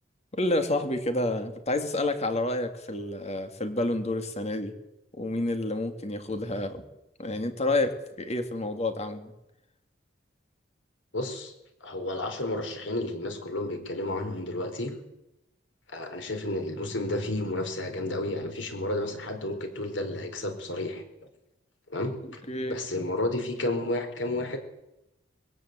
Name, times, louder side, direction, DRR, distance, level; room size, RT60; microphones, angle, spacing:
voice 1, 0.3-4.8 5.1-6.8 7.2-9.3 22.2-22.8, left 2 dB, 35° left, 7 dB, 2.5 m, -29 dB
voice 2, 11.1-11.5 11.8-14.9 15.9-21.0 21.9-22.4 22.7-24.6, left 1 dB, 85° left, 6 dB, 4.5 m, -31 dB
21.0 x 18.0 x 8.2 m, 0.88 s
head